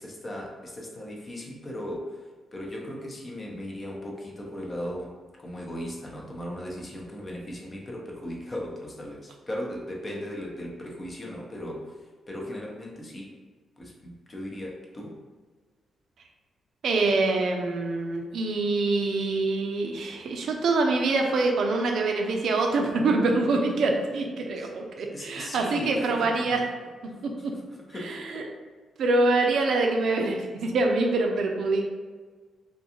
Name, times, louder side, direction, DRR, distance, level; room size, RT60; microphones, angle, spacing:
voice 1, 0.0-2.2 2.5-5.1 5.4-11.9 12.3-13.3 13.8-15.1 24.6-24.7 25.1-26.7 27.5-27.6 27.9-28.5, equal, 35° left, -2 dB, 0.7 m, -37 dB
voice 2, 16.8-26.6 27.2-27.5 28.1-28.4 29.0-31.9, right 3 dB, 70° right, 2 dB, 0.4 m, -25 dB
2.5 x 2.3 x 2.8 m, 1.5 s
supercardioid pair, 50°, 0 cm